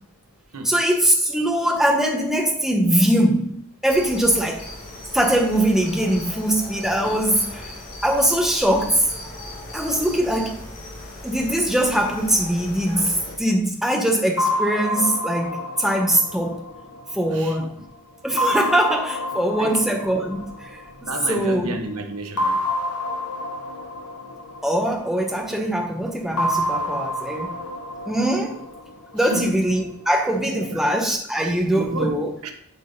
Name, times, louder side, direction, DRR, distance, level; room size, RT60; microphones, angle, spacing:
voice 1, 0.6-4.6 5.1-7.6 8.0-9.1 9.7-10.6 11.2-16.7 17.1-17.7 18.2-20.5 21.0-21.7 24.6-27.5 28.1-28.6 29.1-32.3, right 1 dB, ahead, 1.0 m, -22 dB
sound 1, 3.9-13.4, left 1 dB, 40° left, 2.2 m, -37 dB
sound 2, 14.4-17.7 18.4-21.3 22.4-25.5 26.4-29.5, left 1 dB, 85° left, 1.0 m, -28 dB
voice 2, 17.3-17.7 19.6-19.9 21.0-22.7 29.2-29.6 30.5-30.8 31.7-32.5, right 1 dB, 80° right, 1.1 m, -31 dB
11.0 x 3.8 x 4.0 m
head